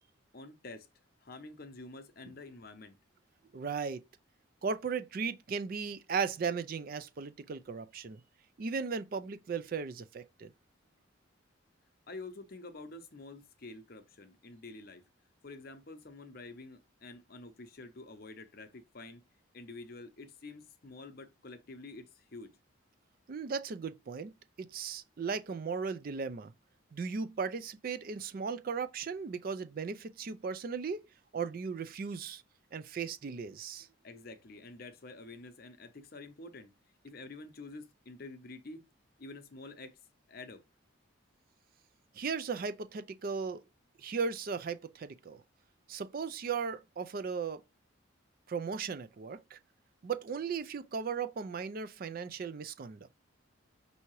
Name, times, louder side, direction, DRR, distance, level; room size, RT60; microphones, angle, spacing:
voice 1, 0.3-0.9 1.2-3.0 12.1-15.0 15.4-19.2 19.5-22.5 34.0-36.7 37.0-38.8 39.2-40.0 40.3-40.6, left 3 dB, 45° left, 0.7 m, -48 dB
voice 2, 3.5-4.0 4.6-8.2 8.6-10.5 23.3-24.3 24.6-26.5 26.9-31.0 31.3-32.4 32.7-33.9 42.1-43.6 44.0-45.4 45.9-47.6 48.5-49.6 50.0-53.2, right 5 dB, 45° right, 0.3 m, -36 dB
5.6 x 2.7 x 3.0 m
head